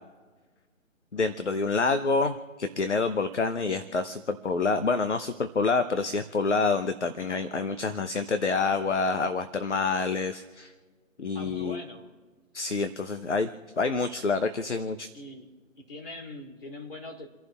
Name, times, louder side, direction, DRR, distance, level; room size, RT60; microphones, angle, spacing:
voice 1, 1.1-10.7 11.2-11.8 12.5-13.5 13.8-15.1, left 4 dB, 55° left, 8 dB, 0.9 m, -27 dB
voice 2, 11.3-12.1 15.1-15.5 15.7-17.3, left 1 dB, 40° left, -1 dB, 3.1 m, -41 dB
30.0 x 11.0 x 2.5 m, 1.4 s
figure-of-eight pair, 155°, 41 cm